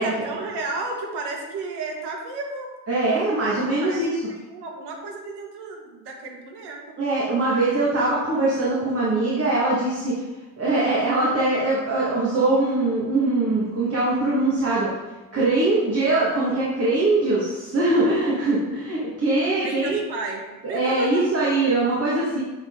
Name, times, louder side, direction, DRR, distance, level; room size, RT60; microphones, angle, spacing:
voice 1, 0.0-2.7 3.2-6.8 7.4-7.7 19.6-21.2, right 3 dB, 60° right, 0 dB, 1.9 m, -33 dB
voice 2, 2.9-4.2 7.0-10.2 10.6-14.9 15.3-20.0 20.6-22.4, right 2 dB, 30° right, -7 dB, 2.2 m, -22 dB
8.5 x 4.2 x 4.0 m, 1.1 s
supercardioid pair, 80°, 45 cm